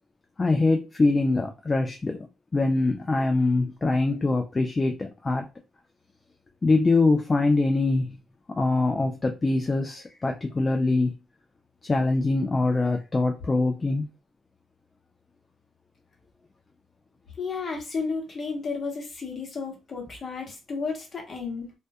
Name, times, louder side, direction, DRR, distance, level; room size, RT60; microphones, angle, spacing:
voice 1, 0.4-2.2 2.5-5.5 6.6-8.2 8.6-11.1 11.8-14.1, left 3 dB, 25° left, 0.3 m, -23 dB
voice 2, 17.4-21.7, left 4 dB, 45° left, 0.9 m, -32 dB
2.3 x 2.1 x 2.7 m
cardioid pair, 90°, 0 cm